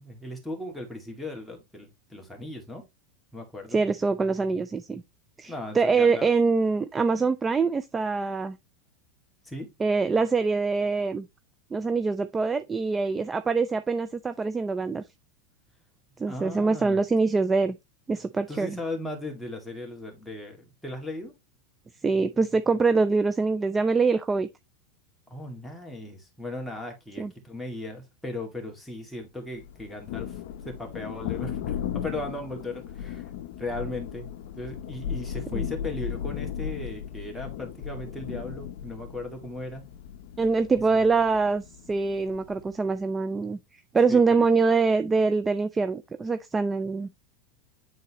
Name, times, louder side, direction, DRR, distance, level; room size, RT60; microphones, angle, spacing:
voice 1, 0.0-2.8 3.3-3.8 5.5-6.3 9.4-9.7 16.3-17.0 18.5-21.3 25.3-33.3 33.6-34.3 34.5-39.8 40.9-41.1 44.1-44.5, left 2 dB, 5° left, 2.1 m, -37 dB
voice 2, 3.7-5.0 5.4-8.6 9.8-11.3 11.7-15.0 16.2-17.7 18.1-18.8 22.0-24.5 27.2-27.3 35.5-35.6 40.4-47.1, right 4 dB, 15° right, 0.4 m, -24 dB
Thunder, 29.6-42.8, left 9 dB, 70° left, 0.7 m, -36 dB
9.1 x 4.0 x 3.0 m
supercardioid pair, 130°, 0 cm